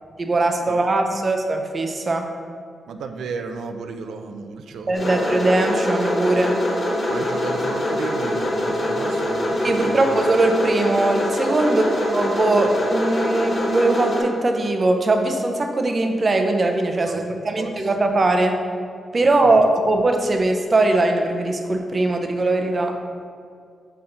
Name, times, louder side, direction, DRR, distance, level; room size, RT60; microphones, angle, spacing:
voice 1, 0.2-2.3 4.9-6.6 9.6-18.6 19.1-23.0, right 2 dB, 25° right, 4 dB, 0.5 m, -20 dB
voice 2, 2.9-5.1 7.1-10.2 11.6-12.0 17.1-17.2 17.5-17.7 19.4-19.6, right 5 dB, 90° right, 6 dB, 0.4 m, -33 dB
sound 1, 4.9-14.2, left 1 dB, 30° left, 1.4 m, -24 dB
6.0 x 5.5 x 3.8 m, 2.2 s
wide cardioid pair, 175°, 0 cm